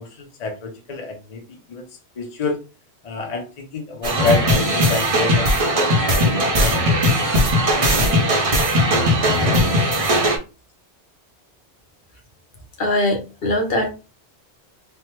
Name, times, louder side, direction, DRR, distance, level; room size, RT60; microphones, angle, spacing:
voice 1, 0.0-1.4 1.7-1.8 2.1-2.6 3.0-7.3, left 3 dB, 40° left, 2 dB, 0.7 m, -28 dB
sound 1, 4.0-10.4, equal, 40° right, 0.6 m, -18 dB
voice 2, 12.8-13.9, left 1 dB, 60° left, 3 dB, 1.0 m, -21 dB
3.2 x 2.0 x 2.9 m, 0.30 s
omnidirectional pair, 1.1 m